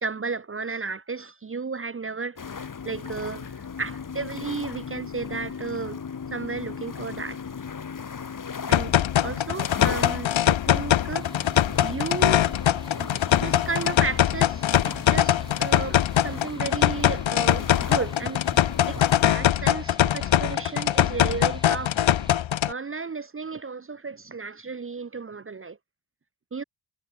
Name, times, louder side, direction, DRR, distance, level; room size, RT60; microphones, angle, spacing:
voice 1, 0.0-6.0 6.3-7.4 8.7-11.3 11.8-12.5 13.0-18.4 18.9-22.1 22.7-25.8 26.5-26.6, right 4 dB, 25° right, 0.8 m, -33 dB
sound 1, 2.4-19.4, left 6 dB, 40° left, 2.0 m, -37 dB
sound 2, 8.7-22.7, left 11 dB, 75° left, 1.0 m, -22 dB
sound 3, 11.2-22.4, right 1 dB, 10° right, 3.4 m, -46 dB
wide cardioid pair, 115°, 47 cm